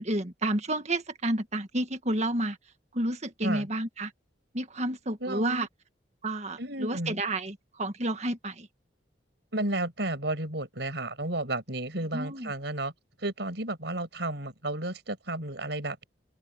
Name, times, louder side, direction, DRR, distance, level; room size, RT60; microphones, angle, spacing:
voice 1, 0.0-2.6 2.9-4.1 4.5-5.7 6.2-8.7 12.1-12.5, right 1 dB, 35° right, 1.9 m, -30 dB
voice 2, 5.2-5.7 6.6-7.2 9.5-12.9 13.2-16.0, right 1 dB, 65° right, 5.9 m, -32 dB
open air
head